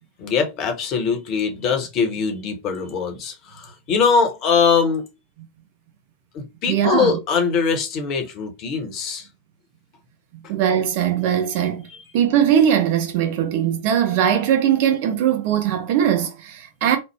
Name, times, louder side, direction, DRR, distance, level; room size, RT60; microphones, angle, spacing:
voice 1, 0.2-5.0 6.3-9.2, left 5 dB, 40° left, 0.8 m, -22 dB
voice 2, 6.7-7.2 10.5-11.9 12.1-17.0, right 9 dB, 50° right, 0.8 m, -20 dB
3.1 x 2.0 x 3.3 m
figure-of-eight pair, 90°, 0 cm